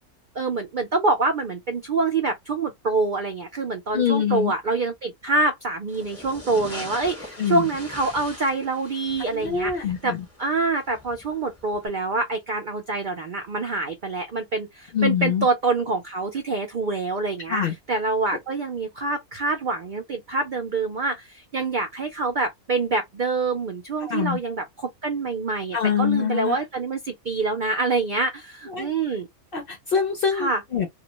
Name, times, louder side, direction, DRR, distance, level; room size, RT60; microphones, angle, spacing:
voice 1, 0.4-10.1 10.4-17.6 17.9-29.3 30.3-30.6, right 3 dB, 85° right, 0.4 m, -26 dB
voice 2, 3.9-4.5 7.4-7.6 9.3-10.2 14.9-15.5 17.5-17.7 24.0-24.4 25.7-26.6 28.7-28.9 29.5-30.9, left 8 dB, 55° left, 0.6 m, -24 dB
sound 1, 5.9-11.9, left 1 dB, 15° left, 0.6 m, -42 dB
2.3 x 2.1 x 2.8 m
omnidirectional pair, 1.5 m